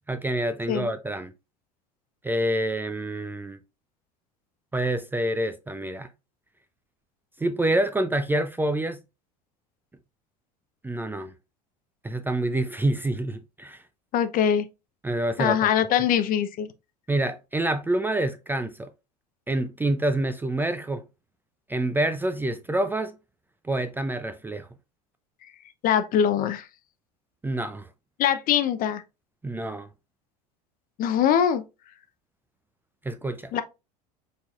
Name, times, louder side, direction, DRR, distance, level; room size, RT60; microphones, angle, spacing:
voice 1, 0.1-1.3 2.2-3.6 4.7-6.1 7.4-9.0 10.8-11.3 12.0-13.8 15.0-15.9 17.1-18.9 19.5-21.0 21.7-23.2 23.6-24.7 27.4-27.9 29.4-29.9 33.0-33.6, right 1 dB, 10° right, 0.4 m, -27 dB
voice 2, 14.1-14.7 15.4-16.7 25.8-26.7 28.2-29.0 31.0-31.6 33.5-33.6, left 9 dB, 45° left, 0.6 m, -22 dB
4.8 x 4.0 x 2.4 m
hypercardioid pair, 80°, 21 cm